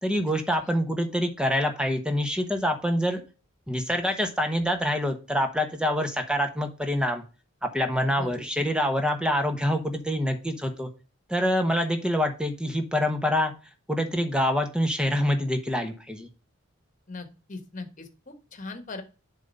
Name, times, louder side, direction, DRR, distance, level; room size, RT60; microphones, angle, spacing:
voice 1, 0.0-3.2 3.7-7.2 7.7-10.9 11.3-13.5 13.9-16.3, equal, 5° right, 6 dB, 1.0 m, -26 dB
voice 2, 8.1-8.4 17.1-19.0, left 3 dB, 40° left, 7 dB, 1.3 m, -40 dB
7.4 x 3.8 x 5.4 m, 0.33 s
head